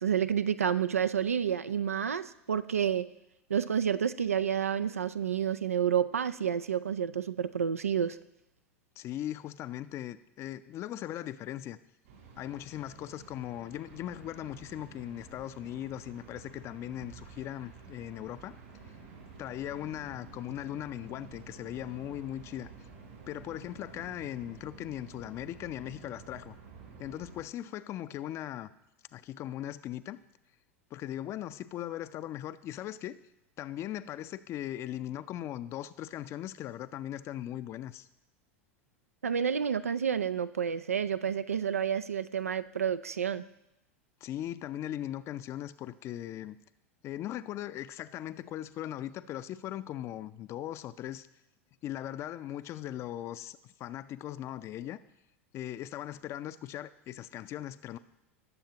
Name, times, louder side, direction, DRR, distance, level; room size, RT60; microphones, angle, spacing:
voice 1, 0.0-3.1 3.5-8.2 39.2-43.4, right 8 dB, 85° right, 13 dB, 0.4 m, -29 dB
voice 2, 9.0-11.8 12.4-18.6 19.4-22.7 23.3-26.5 27.0-28.7 29.1-30.2 30.9-33.2 33.6-38.1 44.2-46.6 47.0-51.3 51.8-55.0 55.5-58.0, left 12 dB, 40° left, 14 dB, 0.5 m, -39 dB
sound 1, 12.0-27.4, right 5 dB, 65° right, 3.2 m, -51 dB
19.0 x 7.2 x 2.9 m, 0.87 s
figure-of-eight pair, 85°, 8 cm